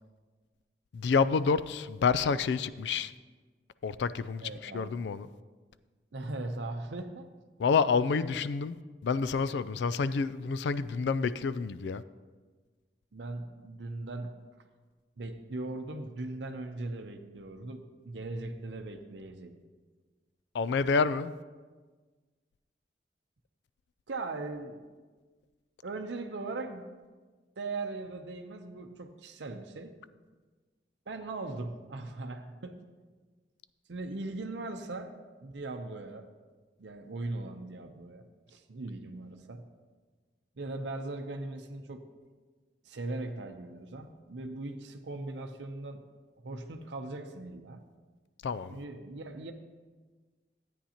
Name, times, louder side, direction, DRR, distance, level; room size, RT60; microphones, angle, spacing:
voice 1, 0.9-3.1 3.8-5.3 7.6-12.0 20.5-21.3 48.4-48.8, left 5 dB, 70° left, 0.3 m, -28 dB
voice 2, 4.4-4.9 6.1-7.3 13.1-14.3 15.2-19.6 24.1-24.9 25.8-26.9 27.6-30.0 31.1-32.8 33.9-36.3 36.8-39.6 40.6-42.0 42.8-46.0 46.4-47.8 48.7-49.5, right 2 dB, 85° right, 0.6 m, -39 dB
13.0 x 9.0 x 2.9 m
head